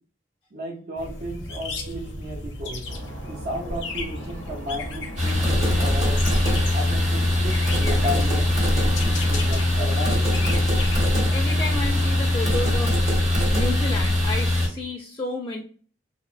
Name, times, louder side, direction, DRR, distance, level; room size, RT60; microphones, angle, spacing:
voice 1, 0.5-2.9 3.2-6.3 6.7-10.3, equal, 60° right, -1 dB, 0.6 m, -34 dB
sound 1, 1.0-12.4, left 2 dB, 75° left, 0.5 m, -35 dB
sound 2, 2.9-12.4, equal, 90° right, 1.2 m, -40 dB
sound 3, 5.2-14.7, left 1 dB, 40° right, 0.9 m, -21 dB
voice 2, 11.3-13.0 13.5-15.6, left 2 dB, 25° left, 0 dB, 0.4 m, -31 dB
2.8 x 2.1 x 2.4 m, 0.42 s
head